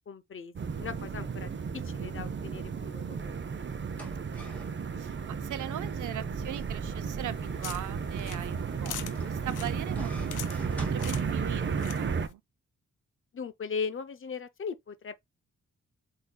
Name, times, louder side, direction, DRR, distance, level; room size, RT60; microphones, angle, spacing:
voice 1, 0.1-3.4 13.3-15.1, left 5 dB, 45° left, 0.6 m, -38 dB
sound 1, 0.6-12.3, right 6 dB, 40° right, 0.6 m, -33 dB
sound 2, 3.8-11.8, equal, 5° left, 1.9 m, -48 dB
voice 2, 4.5-5.1 5.4-9.0 9.2-12.4, right 12 dB, 80° right, 0.5 m, -40 dB
sound 3, 7.3-12.3, left 10 dB, 85° left, 0.6 m, -45 dB
8.1 x 2.8 x 2.2 m
wide cardioid pair, 110°, 30 cm